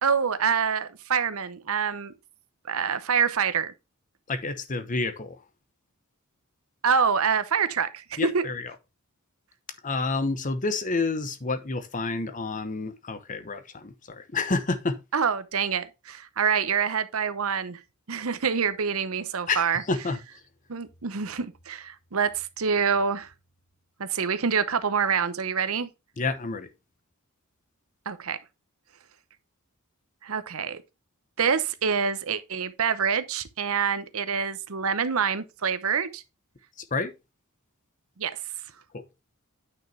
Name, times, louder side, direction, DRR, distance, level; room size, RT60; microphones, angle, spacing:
voice 1, 0.0-2.1 2.7-3.7 6.8-8.4 15.1-17.8 18.1-19.8 20.7-23.3 24.0-25.9 28.1-28.4 30.2-30.8 31.4-36.2 38.2-38.4, right 6 dB, 70° right, 0.8 m, -26 dB
voice 2, 4.3-5.4 8.2-8.7 9.8-15.0 19.5-20.2 26.2-26.7 36.9-37.1 38.9-39.0, left 3 dB, 35° left, 1.0 m, -29 dB
9.3 x 5.5 x 3.3 m
head